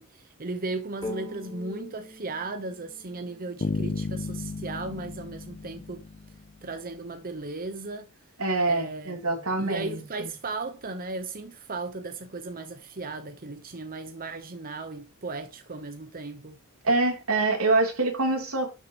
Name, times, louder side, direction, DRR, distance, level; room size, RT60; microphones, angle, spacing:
voice 1, 0.0-6.1 6.6-8.1 8.7-9.2 9.6-16.6, right 3 dB, 45° right, 0.9 m, -36 dB
sound 1, 1.0-4.7, left 1 dB, 20° left, 3.9 m, -42 dB
sound 2, 3.6-6.6, left 3 dB, 45° left, 0.5 m, -33 dB
voice 2, 8.4-10.3 16.8-18.7, right 2 dB, 85° right, 3.2 m, -25 dB
11.5 x 6.5 x 3.0 m
head